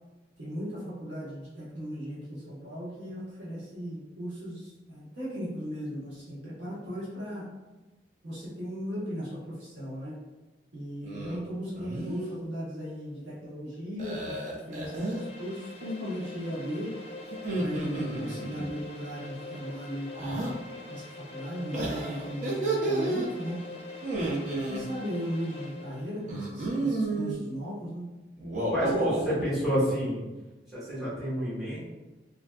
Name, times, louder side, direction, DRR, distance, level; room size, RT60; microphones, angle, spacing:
voice 1, 0.4-7.5 8.2-10.2 10.7-17.0 17.6-20.5 20.9-23.6 24.3-28.1, equal, 75° right, -8 dB, 1.0 m, -37 dB
sound 1, 11.0-11.4 11.8-12.3 14.0-15.2 17.3-18.7 20.1-20.5 21.7-23.3 24.0-24.8 26.3-27.4 28.4-29.4, right 2 dB, 45° right, 0.5 m, -31 dB
sound 2, 14.6-26.2, left 3 dB, 35° left, 0.4 m, -44 dB
voice 2, 28.7-30.2 30.7-31.8, equal, ahead, -11 dB, 1.1 m, -29 dB
3.4 x 2.5 x 2.2 m, 1.1 s
head